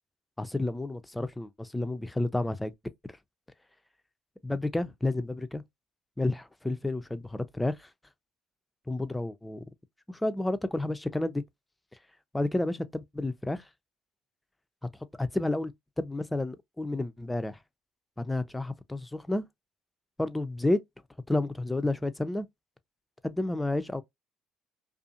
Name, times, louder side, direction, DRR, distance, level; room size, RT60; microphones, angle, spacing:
voice 1, 0.4-2.7 4.4-5.6 6.2-7.9 8.9-9.6 10.1-11.4 12.3-13.6 15.2-17.6 18.2-19.4 20.2-20.8 21.3-22.5 23.2-24.0, left 2 dB, 10° left, 0.4 m, -30 dB
2.5 x 2.4 x 2.7 m
hypercardioid pair, 65°, 0 cm